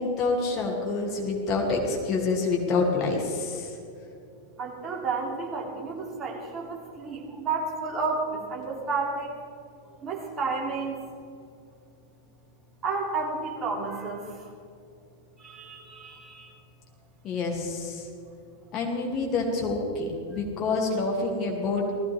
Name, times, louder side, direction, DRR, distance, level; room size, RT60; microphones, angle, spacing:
voice 1, 0.0-3.8 17.2-18.1 18.7-21.9, left 3 dB, 35° left, 0 dB, 2.8 m, -27 dB
voice 2, 4.6-9.3 10.0-10.9 12.8-14.3 15.4-16.5, right 4 dB, 25° right, -2 dB, 3.1 m, -31 dB
19.0 x 15.5 x 3.6 m, 2.5 s
figure-of-eight pair, 90°, 0 cm